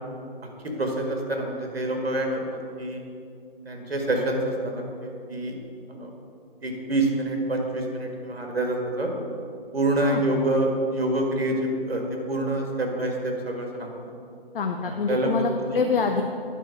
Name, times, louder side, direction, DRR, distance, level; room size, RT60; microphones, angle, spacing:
voice 1, 0.8-3.0 3.7-4.7 5.0-5.6 5.9-6.1 6.6-9.1 9.7-12.0 12.3-14.0 14.8-15.3 15.7-15.9, right 1 dB, 80° right, 1 dB, 1.7 m, -27 dB
voice 2, 14.5-16.2, left 5 dB, 60° left, 4 dB, 0.6 m, -25 dB
10.0 x 4.5 x 5.6 m, 2.6 s
figure-of-eight pair, 150°, 30 cm